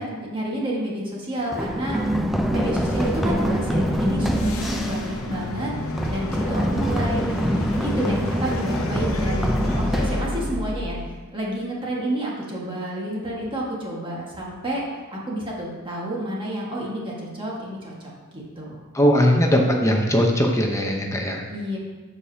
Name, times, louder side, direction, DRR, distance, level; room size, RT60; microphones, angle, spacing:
voice 1, 0.0-2.0 2.5-5.7 6.1-7.2 7.8-14.8 15.1-18.8 21.5-21.8, right 1 dB, 25° right, -4 dB, 1.6 m, -30 dB
Run, 1.5-11.3, equal, ahead, 0.4 m, -25 dB
sound 1, 2.5-10.2, left 2 dB, 80° left, 0.8 m, -33 dB
voice 2, 18.9-21.4, equal, 15° left, 1 dB, 0.8 m, -19 dB
12.5 x 4.9 x 2.8 m, 1.3 s
head